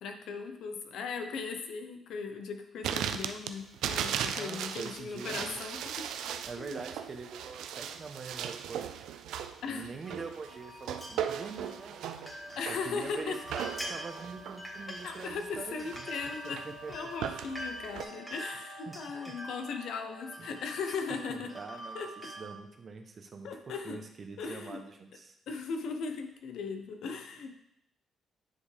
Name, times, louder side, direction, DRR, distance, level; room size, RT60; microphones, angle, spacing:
voice 1, 0.0-6.0 6.6-6.8 9.6-10.0 12.5-13.4 15.0-21.5 21.9-22.1 23.4-24.0 24.4-24.8 25.5-27.6, left 5 dB, 75° left, 6 dB, 0.7 m, -38 dB
sound 1, 2.8-18.0, right 9 dB, 85° right, 0.3 m, -38 dB
voice 2, 4.3-5.5 6.4-9.2 9.7-12.0 12.7-16.1 16.4-16.9 17.2-17.3 18.9-19.0 19.3-19.4 20.4-20.5 21.3-22.0 22.2-25.3, right 4 dB, 45° right, 5 dB, 0.8 m, -44 dB
sound 2, 10.0-22.5, equal, 5° left, 1.7 m, -45 dB
9.6 x 3.5 x 3.3 m, 0.80 s
cardioid pair, 90°, 0 cm